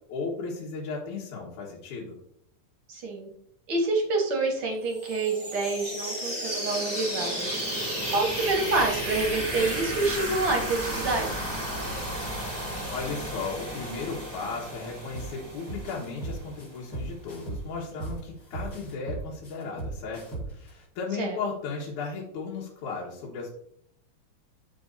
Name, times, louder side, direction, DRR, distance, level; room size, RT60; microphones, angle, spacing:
voice 1, 0.1-2.2 12.9-23.5, left 4 dB, 70° left, -3 dB, 2.7 m, -35 dB
voice 2, 2.9-3.3 3.7-7.6 8.1-11.4 21.2-21.4, right 3 dB, 55° right, 1 dB, 1.7 m, -27 dB
sound 1, 4.9-16.6, equal, 5° right, 2.2 m, -33 dB
sound 2, 15.1-15.3 15.7-18.2 18.5-20.7, right 2 dB, 30° left, 2.7 m, -36 dB
12.5 x 5.0 x 2.6 m, 0.68 s
omnidirectional pair, 3.7 m